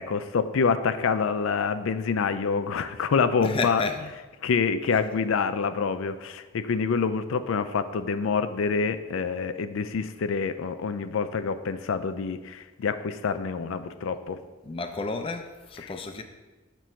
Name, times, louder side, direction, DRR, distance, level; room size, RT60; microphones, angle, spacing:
voice 1, 0.0-3.8 4.4-14.4 15.8-15.9, left 5 dB, 85° left, 0.4 m, -27 dB
voice 2, 3.4-4.0 14.6-16.2, left 3 dB, 25° left, 0.4 m, -31 dB
7.4 x 3.0 x 5.6 m
head